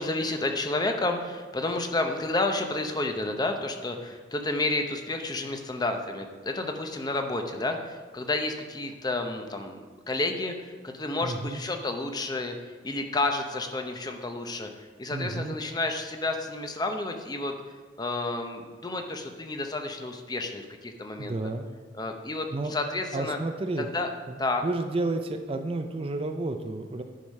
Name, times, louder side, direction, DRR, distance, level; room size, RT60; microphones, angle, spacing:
voice 1, 0.0-14.7 15.0-17.5 18.0-21.3 22.0-23.4 23.8-24.1 24.4-24.6, left 2 dB, 20° left, 5 dB, 0.7 m, -30 dB
voice 2, 11.2-11.6 15.1-15.6 21.2-21.7 22.5-22.7 23.1-23.9 24.3-27.0, right 2 dB, 30° right, 6 dB, 0.4 m, -31 dB
10.5 x 4.9 x 5.4 m, 1.4 s
head